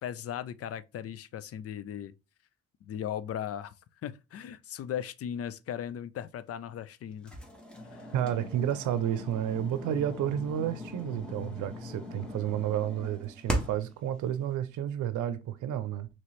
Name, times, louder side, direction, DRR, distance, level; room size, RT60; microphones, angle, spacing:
voice 1, 0.0-2.1 2.8-3.7 4.0-7.3 7.9-8.1, left 9 dB, 50° left, 0.4 m, -37 dB
sound 1, 7.3-13.9, left 1 dB, 5° left, 1.1 m, -39 dB
voice 2, 8.1-16.1, right 10 dB, 75° right, 0.6 m, -31 dB
3.0 x 3.0 x 4.1 m
cardioid pair, 90°, 30 cm